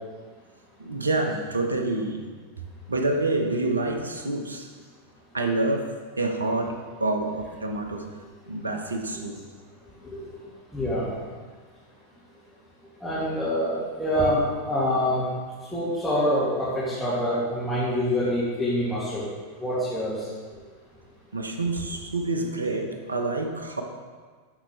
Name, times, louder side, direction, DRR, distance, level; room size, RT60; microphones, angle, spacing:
voice 1, 0.8-2.2 2.9-4.7 5.3-5.9 6.2-6.7 7.0-8.0 8.5-9.4 21.3-23.8, right 2 dB, 75° right, 4 dB, 1.0 m, -27 dB
voice 2, 10.7-11.1 13.0-14.4 14.7-15.2 15.7-19.2 19.6-20.1, equal, ahead, -12 dB, 2.4 m, -25 dB
13.0 x 5.6 x 3.3 m, 1.5 s
figure-of-eight pair, 90°, 0 cm